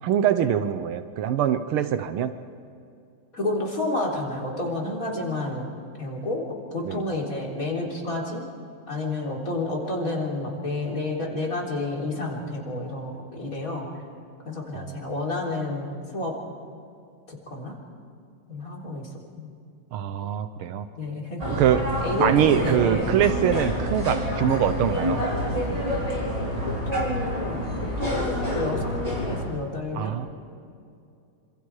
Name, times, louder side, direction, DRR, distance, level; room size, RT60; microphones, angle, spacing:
voice 1, 0.0-2.3 6.9-7.0 14.7-15.0 19.9-20.9 21.5-21.9 22.2-25.2 30.0-30.3, right 9 dB, 85° right, 10 dB, 1.8 m, -23 dB
voice 2, 3.3-5.6 6.0-6.5 6.7-8.4 8.9-13.9 14.4-16.4 17.3-17.8 18.5-19.1 19.4-19.5 20.9-21.5 22.0-22.9 26.6-30.3, left 2 dB, 40° left, -2 dB, 4.3 m, -30 dB
sound 1, 21.4-29.4, equal, 15° right, 5.3 m, -27 dB
27.5 x 26.5 x 4.9 m, 2.5 s
omnidirectional pair, 2.3 m